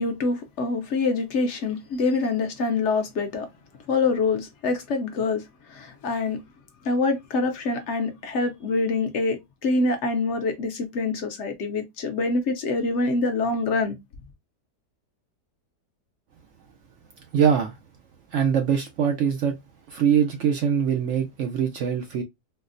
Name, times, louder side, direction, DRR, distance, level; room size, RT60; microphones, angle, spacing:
voice 1, 0.0-3.5 3.9-6.4 6.8-14.0, left 3 dB, 65° left, 0.7 m, -25 dB
voice 2, 17.3-17.8 18.3-19.6 19.9-22.2, right 8 dB, 80° right, 0.6 m, -23 dB
4.1 x 2.0 x 2.5 m
omnidirectional pair, 1.8 m